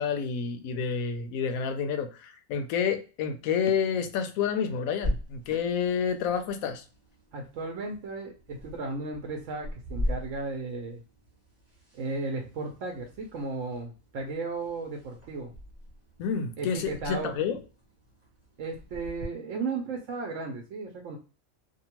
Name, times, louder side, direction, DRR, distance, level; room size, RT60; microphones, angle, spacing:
voice 1, 0.0-6.8 16.2-17.6, left 7 dB, 75° left, 7 dB, 0.9 m, -29 dB
sound 1, 5.0-19.2, left 1 dB, 10° right, 0.9 m, -40 dB
voice 2, 7.3-11.0 11.9-15.5 16.6-17.4 18.6-21.2, right 3 dB, 65° right, 1 dB, 0.9 m, -35 dB
2.8 x 2.2 x 2.9 m, 0.33 s
omnidirectional pair, 1.5 m